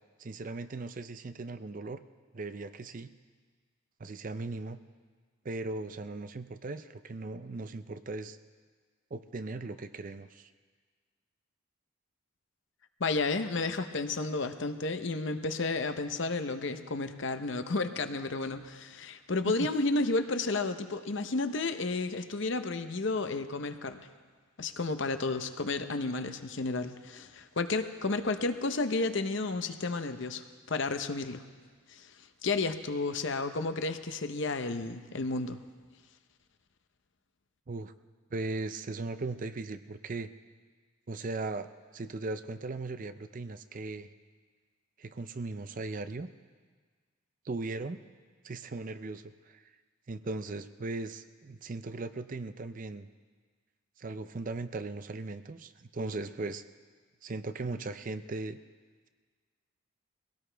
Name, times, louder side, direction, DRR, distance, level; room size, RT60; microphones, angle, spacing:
voice 1, 0.2-2.0 2.3-3.1 4.0-4.8 5.4-8.4 9.1-10.5 19.5-19.7 37.7-37.9 38.3-40.3 41.1-44.1 45.0-46.3 47.4-48.0 48.4-49.6 50.1-53.1 54.0-56.6 57.2-58.6, right 3 dB, 40° right, 11 dB, 0.5 m, -38 dB
voice 2, 13.0-24.0 24.6-31.4 31.9-35.6, left 3 dB, 60° left, 9 dB, 0.8 m, -32 dB
22.0 x 17.5 x 3.4 m, 1.5 s
head